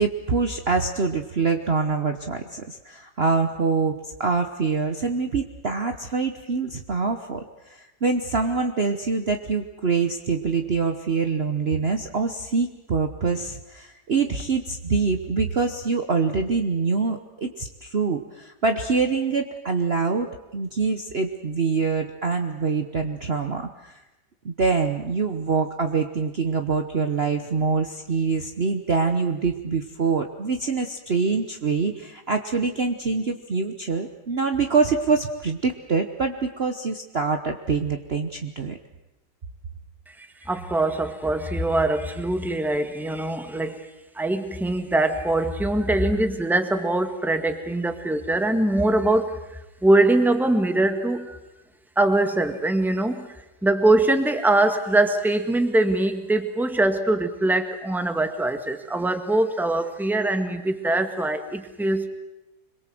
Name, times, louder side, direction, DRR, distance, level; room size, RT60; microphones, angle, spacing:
voice 1, 0.0-24.0 24.4-38.8, right 4 dB, 40° right, 6 dB, 1.2 m, -25 dB
voice 2, 40.2-43.8 44.1-49.4 49.8-51.4 52.0-53.3 53.6-62.1, right 2 dB, ahead, 7 dB, 1.5 m, -22 dB
26.0 x 22.0 x 7.8 m, 0.98 s
omnidirectional pair, 1.9 m